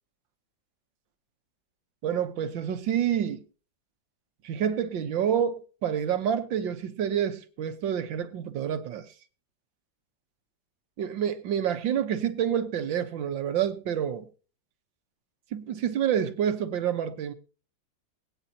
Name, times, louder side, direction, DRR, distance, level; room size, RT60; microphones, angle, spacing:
voice 1, 2.0-3.4 4.4-9.1 11.0-14.3 15.5-17.3, right 9 dB, 85° right, 1.8 m, -28 dB
21.5 x 9.2 x 2.8 m
omnidirectional pair, 2.0 m